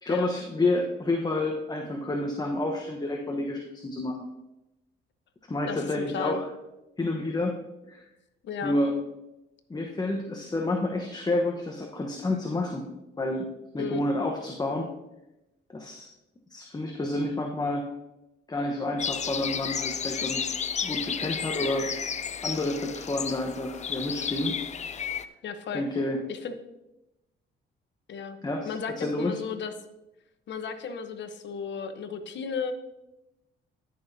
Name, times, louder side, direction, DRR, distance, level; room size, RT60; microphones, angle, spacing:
voice 1, 0.0-4.2 5.5-6.4 7.0-7.6 7.9-8.0 8.6-8.9 9.7-12.8 13.2-13.5 13.7-14.9 15.7-16.1 16.5-17.9 18.5-20.5 20.8-21.9 22.4-24.6 25.7-26.2 28.4-29.4, left 2 dB, 20° left, 1 dB, 1.0 m, -29 dB
voice 2, 5.7-6.4 8.4-8.8 13.8-14.0 25.4-25.8 26.3-26.6 28.1-28.4 28.6-29.7 30.5-32.7, left 5 dB, 65° left, 8 dB, 0.9 m, -34 dB
sound 1, 19.0-25.2, left 7 dB, 35° left, 0.5 m, -32 dB
13.5 x 6.0 x 2.7 m, 0.94 s
cardioid pair, 90°, 20 cm